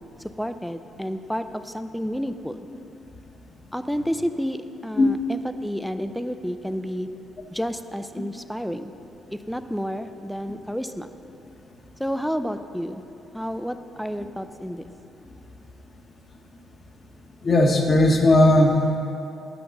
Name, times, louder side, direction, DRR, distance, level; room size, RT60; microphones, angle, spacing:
voice 1, 0.4-2.7 3.7-7.1 7.5-8.9 9.3-11.1 12.0-13.0 13.3-14.8, equal, ahead, 10 dB, 0.4 m, -30 dB
voice 2, 17.4-19.0, left 1 dB, 40° left, 2 dB, 1.2 m, -18 dB
10.0 x 5.3 x 7.0 m, 2.8 s
cardioid pair, 90°, 0 cm